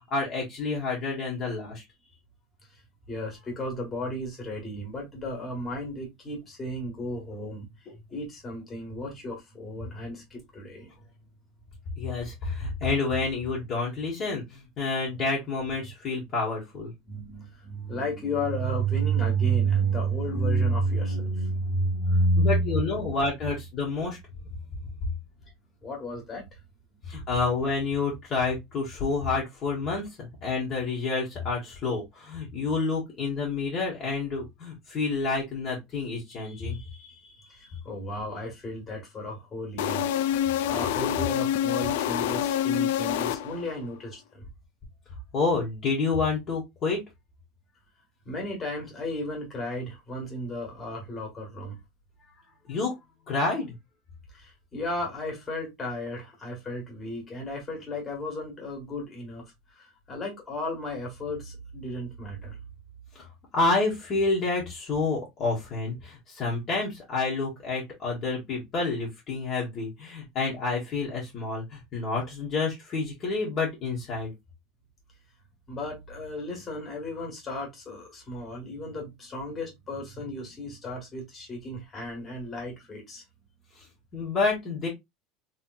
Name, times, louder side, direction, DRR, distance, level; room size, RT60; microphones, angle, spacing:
voice 1, 0.1-1.8 12.0-16.9 22.4-24.2 27.1-37.1 45.3-47.0 52.7-52.9 53.3-53.7 63.1-63.2 63.5-74.3 84.1-84.9, left 3 dB, 35° left, 1.2 m, -29 dB
voice 2, 3.1-7.7 7.9-10.9 17.1-23.1 25.8-26.4 37.5-40.1 40.6-44.5 48.2-51.8 54.3-59.5 59.8-62.6 75.7-83.2, right 1 dB, 20° left, 1.5 m, -32 dB
sound 1, 39.8-43.8, left 10 dB, 85° left, 0.3 m, -27 dB
3.2 x 2.9 x 2.3 m
supercardioid pair, 145°, 0 cm